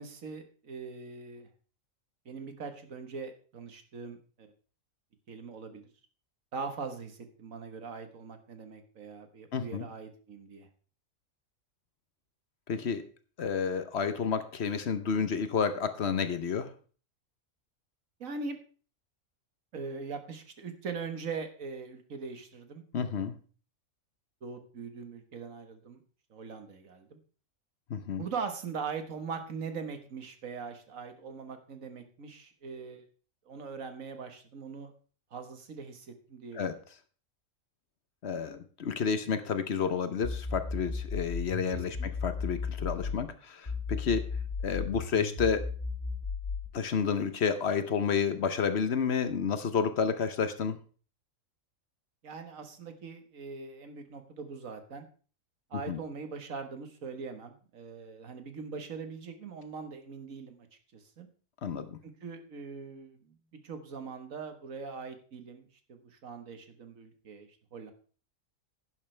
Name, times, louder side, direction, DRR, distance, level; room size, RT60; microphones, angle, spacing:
voice 1, 0.0-1.5 2.3-4.5 5.3-5.9 6.5-10.7 18.2-18.6 19.7-22.8 24.4-26.0 26.3-27.2 28.2-33.1 33.5-34.9 35.3-36.7 41.7-42.1 52.2-55.1 55.7-60.7 60.9-61.3 62.0-63.3 63.6-67.9, right 5 dB, 85° right, 7 dB, 1.8 m, -41 dB
voice 2, 9.5-9.9 12.7-13.0 13.4-16.7 22.9-23.3 27.9-28.2 36.5-36.7 38.2-44.3 44.6-45.7 46.7-50.8 55.7-56.0 61.6-62.0, left 6 dB, 55° left, 11 dB, 1.1 m, -30 dB
sound 1, 40.2-43.2 43.7-46.7, left 4 dB, 30° left, 2.0 m, -34 dB
11.0 x 10.5 x 3.3 m, 0.39 s
omnidirectional pair, 1.4 m